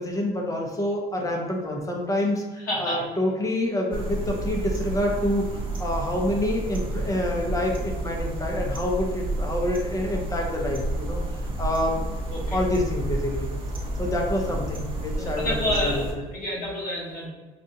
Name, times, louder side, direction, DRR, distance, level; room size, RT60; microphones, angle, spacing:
voice 1, 0.0-2.4 2.8-11.2 11.6-12.2 12.5-13.5 14.0-15.6 15.8-16.0, left 1 dB, 20° left, 0 dB, 0.8 m, -27 dB
voice 2, 2.6-3.0 12.3-12.6 15.2-17.3, left 1 dB, 60° left, -4 dB, 1.3 m, -29 dB
sound 1, 3.9-16.1, right 1 dB, 30° right, 0.8 m, -30 dB
5.0 x 2.4 x 2.8 m, 1.3 s
cardioid pair, 110°, 17 cm